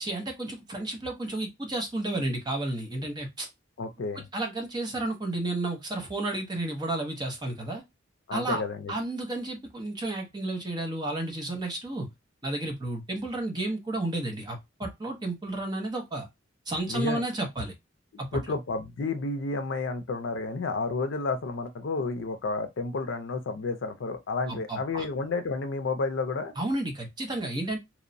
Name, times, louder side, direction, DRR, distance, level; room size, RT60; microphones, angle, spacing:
voice 1, 0.0-3.5 4.1-7.8 8.3-8.6 8.9-12.1 12.4-16.3 16.7-17.7 18.2-18.4 24.5-25.0 26.6-27.8, right 2 dB, 20° right, 0.6 m, -32 dB
voice 2, 3.8-4.3 8.3-8.9 16.9-17.2 18.3-26.5, left 3 dB, 70° left, 0.5 m, -31 dB
2.9 x 2.0 x 2.6 m
head